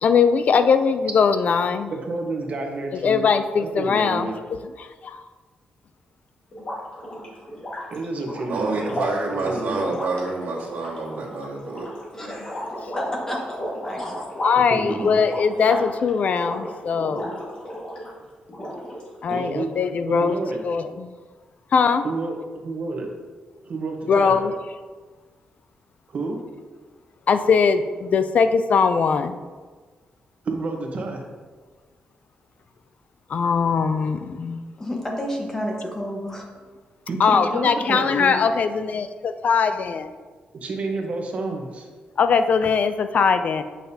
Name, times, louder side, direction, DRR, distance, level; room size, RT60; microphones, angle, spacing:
voice 1, 0.0-1.9 3.0-4.3 4.8-5.2 14.4-17.3 19.2-20.4 20.6-21.1 21.7-22.1 24.1-24.5 27.3-29.4 33.3-34.6 37.2-40.1 42.2-43.6, left 5 dB, 50° left, 10 dB, 0.3 m, -20 dB
voice 2, 1.9-3.3 3.6-4.4 7.9-9.0 9.5-10.0 14.7-15.1 19.3-20.6 22.0-23.1 23.6-24.4 26.1-26.4 30.4-31.2 37.1-38.4 40.5-41.9, right 3 dB, 50° right, 2 dB, 1.0 m, -29 dB
sound 1, 6.5-18.1 18.5-19.3, equal, 35° left, 1.7 m, -34 dB
voice 3, 8.5-11.9, right 3 dB, 80° right, -5 dB, 1.7 m, -28 dB
voice 4, 12.1-12.6 13.0-14.3 34.8-36.5, equal, 15° left, 0 dB, 1.2 m, -31 dB
8.3 x 5.7 x 2.8 m, 1.4 s
wide cardioid pair, 145°, 3 cm